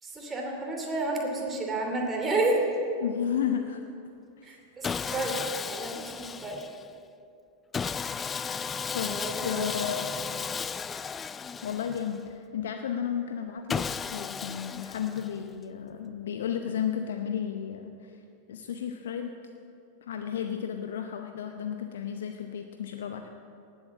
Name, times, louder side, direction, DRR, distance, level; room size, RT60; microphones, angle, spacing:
voice 1, 0.0-2.9 4.4-6.6 9.1-9.7 10.2-10.3, right 2 dB, 15° right, 0 dB, 2.8 m, -31 dB
voice 2, 3.0-3.8 4.4-4.6 8.9-10.1 11.6-18.2 18.5-19.4 20.0-23.3, left 8 dB, 60° left, 6 dB, 0.7 m, -33 dB
Sawing, 4.8-6.9 7.7-12.3 13.7-15.5, left 6 dB, 20° left, 0.3 m, -34 dB
18.5 x 8.0 x 7.2 m, 2.6 s
figure-of-eight pair, 90°, 0 cm